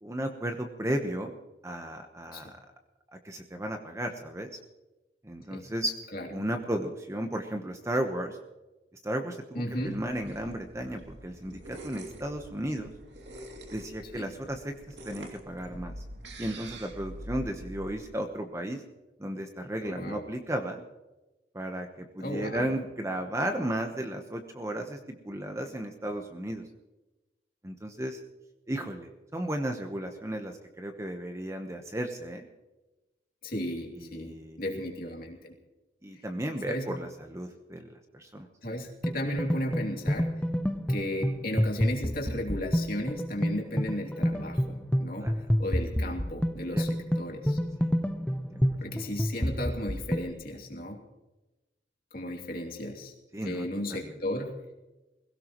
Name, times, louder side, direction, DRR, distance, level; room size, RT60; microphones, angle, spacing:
voice 1, 0.0-1.3 1.6-2.6 3.2-4.5 5.2-5.9 6.3-8.4 9.0-12.9 13.7-16.0 16.4-18.8 19.2-20.8 21.5-26.6 27.6-28.2 28.7-32.5 34.0-34.8 36.0-38.5 45.2-45.3 46.7-46.8 47.8-47.9 48.5-48.6 53.3-54.1, right 1 dB, 15° right, 4 dB, 1.0 m, -34 dB
voice 2, 9.5-10.0 14.1-14.3 19.8-20.2 22.2-22.7 33.4-35.5 36.7-36.8 38.6-40.3 40.9-45.3 45.6-46.9 47.1-47.6 48.8-51.0 52.1-53.1 53.4-54.5, left 1 dB, 55° left, 0 dB, 2.8 m, -34 dB
sound 1, 9.8-17.9, right 1 dB, 90° right, 2.5 m, -45 dB
sound 2, 39.0-50.3, equal, 5° left, 0.7 m, -29 dB
22.0 x 17.0 x 3.1 m, 1.1 s
head